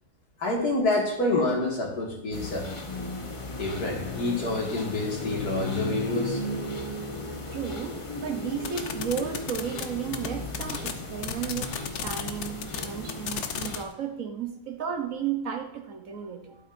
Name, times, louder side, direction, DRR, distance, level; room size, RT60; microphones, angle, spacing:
voice 1, 0.4-2.7 3.6-6.4, left 2 dB, 75° left, -1 dB, 2.5 m, -27 dB
sound 1, 2.3-13.8, left 2 dB, 25° left, 0.7 m, -35 dB
voice 2, 7.5-11.7 12.0-16.6, right 8 dB, 60° right, 5 dB, 1.2 m, -33 dB
sound 2, 8.6-9.8 10.1-10.3 10.5-10.9 11.2-13.8, left 8 dB, 60° left, 0.9 m, -32 dB
12.0 x 7.8 x 2.6 m, 0.90 s
omnidirectional pair, 1.7 m